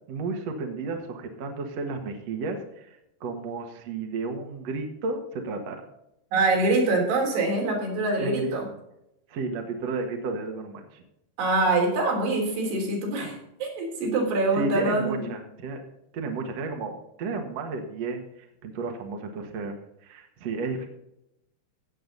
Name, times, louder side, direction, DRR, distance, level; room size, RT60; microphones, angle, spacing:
voice 1, 0.1-5.9 8.2-8.5 9.3-11.0 14.5-15.8 16.1-19.7 20.0-20.9, right 3 dB, 55° right, 4 dB, 2.0 m, -32 dB
voice 2, 6.3-8.7 11.4-15.3, right 2 dB, 80° right, 0 dB, 5.6 m, -25 dB
16.5 x 7.8 x 4.0 m, 0.83 s
omnidirectional pair, 4.7 m